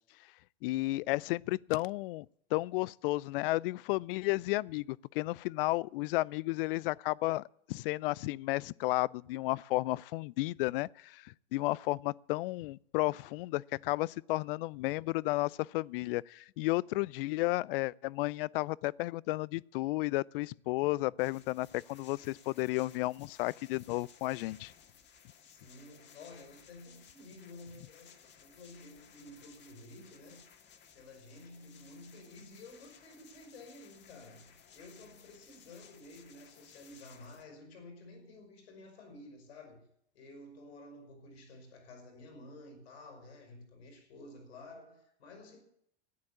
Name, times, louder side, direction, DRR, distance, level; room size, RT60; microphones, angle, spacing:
voice 1, 0.6-2.3 2.5-24.7, left 20 dB, 60° left, 0.5 m, -33 dB
sound 1, 21.2-37.4, left 7 dB, 35° left, 1.9 m, -59 dB
voice 2, 25.4-30.4 30.9-39.9 40.1-45.6, left 2 dB, 75° left, 5.9 m, -52 dB
13.5 x 9.9 x 8.4 m
hypercardioid pair, 100°, 32 cm